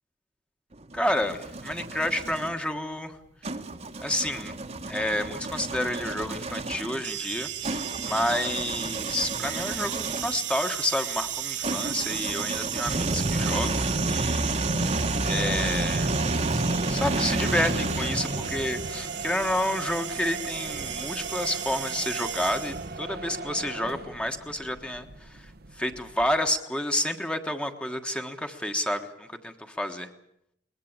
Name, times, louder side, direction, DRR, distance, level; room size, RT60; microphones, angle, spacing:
sound 1, 0.7-2.5 3.4-10.4 11.6-18.9, right 2 dB, 35° right, 1.3 m, -30 dB
voice 1, 0.9-3.2 4.0-4.5 4.9-14.5 15.2-16.1 16.5-16.6 16.9-30.1, left 1 dB, 5° left, 6 dB, 1.4 m, -30 dB
sound 2, 7.0-23.0, right 11 dB, 75° right, 2.7 m, -35 dB
sound 3, 14.8-26.6, right 3 dB, 55° right, 1.0 m, -39 dB
22.0 x 20.0 x 8.8 m, 0.77 s
head